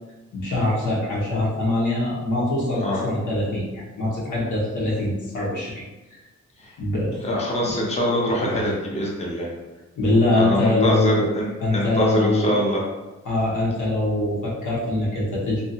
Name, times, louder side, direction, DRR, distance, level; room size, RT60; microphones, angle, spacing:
voice 1, 0.3-5.8 6.8-7.2 7.6-7.7 10.0-11.3 11.6-12.5 13.2-15.6, left 2 dB, 90° left, -6 dB, 1.0 m, -23 dB
voice 2, 7.2-9.5 10.3-12.8, equal, 20° left, -3 dB, 0.6 m, -24 dB
2.7 x 2.5 x 2.7 m, 1.1 s
wide cardioid pair, 120°, 30 cm